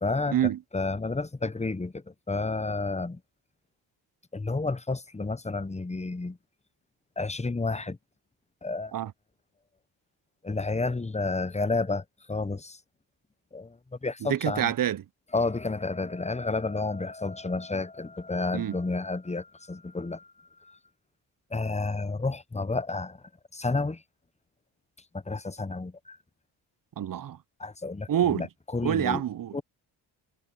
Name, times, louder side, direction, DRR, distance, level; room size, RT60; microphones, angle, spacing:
voice 1, 0.0-0.4 0.7-3.2 4.3-6.4 7.2-8.0 8.6-8.9 10.4-12.8 13.5-13.7 14.0-14.7 15.3-20.3 20.7-20.8 21.5-23.2 23.5-24.0 25.3-26.2 27.6-28.5 28.7-29.2 29.5-29.6, left 3 dB, 15° left, 0.9 m, -30 dB
voice 2, 14.2-15.0 18.5-18.8 27.0-27.4 28.1-28.5 28.8-29.6, right 10 dB, 45° right, 0.6 m, -27 dB
cardioid pair, 60°, 47 cm